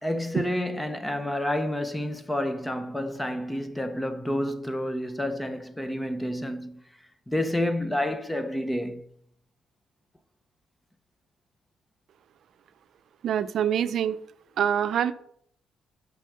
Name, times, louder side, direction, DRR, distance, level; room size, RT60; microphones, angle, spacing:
voice 1, 0.0-6.8 7.3-9.0, left 1 dB, 10° left, 0.7 m, -29 dB
voice 2, 13.2-14.2 14.6-15.1, right 9 dB, 65° right, 0.5 m, -25 dB
6.1 x 5.6 x 6.4 m
cardioid pair, 90°, 0 cm